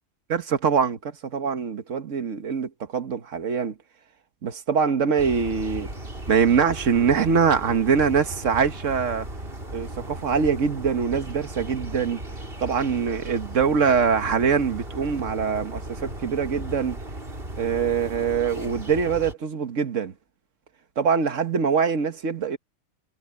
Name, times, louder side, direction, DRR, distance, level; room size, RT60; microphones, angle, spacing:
voice 1, 0.3-3.7 4.4-5.9 6.3-9.3 9.7-12.2 12.6-17.0 17.6-20.1 21.0-22.6, right 6 dB, 65° right, 1.7 m, -23 dB
sound 1, 5.2-19.3, right 1 dB, 40° right, 5.0 m, -36 dB
omnidirectional pair, 1.4 m